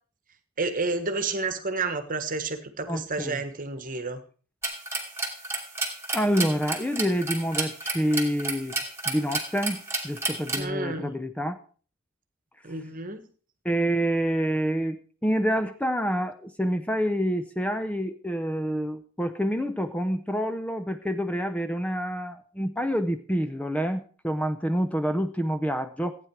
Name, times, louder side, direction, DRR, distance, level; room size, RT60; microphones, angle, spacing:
voice 1, 0.6-4.2 10.5-11.1 12.6-13.2, right 3 dB, 40° right, 10 dB, 1.4 m, -30 dB
voice 2, 2.9-3.4 6.1-8.8 9.1-11.6 13.6-26.2, equal, 5° left, 8 dB, 0.6 m, -27 dB
sound 1, 4.6-10.6, right 3 dB, 15° right, 2.5 m, -31 dB
15.0 x 9.2 x 4.7 m, 0.41 s
head